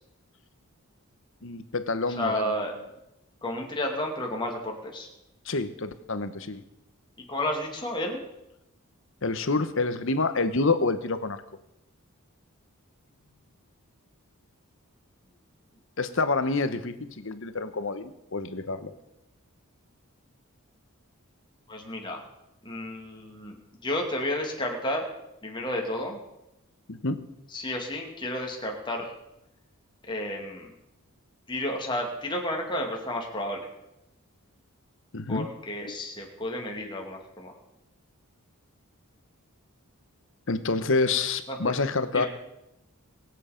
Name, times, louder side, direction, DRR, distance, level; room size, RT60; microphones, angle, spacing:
voice 1, 1.4-2.7 5.4-6.6 9.2-11.4 16.0-18.9 26.9-27.3 35.1-35.5 35.8-36.0 40.5-42.3, left 3 dB, 60° left, 11 dB, 1.0 m, -28 dB
voice 2, 2.2-2.7 3.4-5.1 7.3-8.2 21.7-22.2 22.6-23.6 23.8-25.0 25.4-26.2 27.5-29.1 30.1-30.7 31.5-33.7 35.3-37.5 41.5-41.7 42.1-42.3, left 1 dB, 20° left, 0 dB, 2.4 m, -31 dB
22.0 x 7.9 x 5.2 m, 0.88 s
head